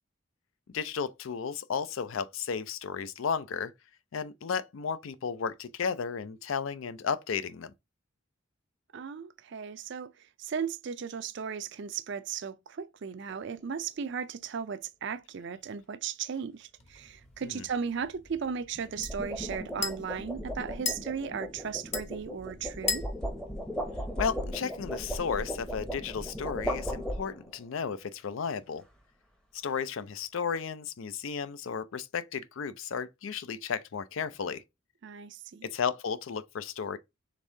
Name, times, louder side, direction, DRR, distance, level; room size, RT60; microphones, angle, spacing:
voice 1, 0.7-3.7 4.1-7.7 17.4-17.6 24.2-28.8 29.5-34.6 35.6-37.0, left 6 dB, 70° left, 0.4 m, -34 dB
voice 2, 8.9-23.1 35.0-35.7, right 6 dB, 60° right, 0.4 m, -36 dB
sound 1, 13.3-13.6 18.7-27.6, equal, 5° left, 0.7 m, -37 dB
sound 2, 16.8-24.6, left 4 dB, 30° left, 0.9 m, -40 dB
5.2 x 3.6 x 2.6 m
head